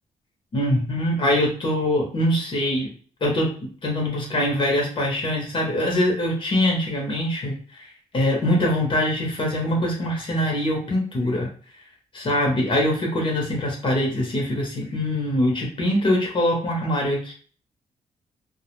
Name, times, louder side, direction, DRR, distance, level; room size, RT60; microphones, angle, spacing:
voice 1, 0.5-2.9 3.2-11.5 12.1-17.3, left 1 dB, 40° left, -1 dB, 0.7 m, -23 dB
2.2 x 2.1 x 2.9 m, 0.43 s
cardioid pair, 135°, 13 cm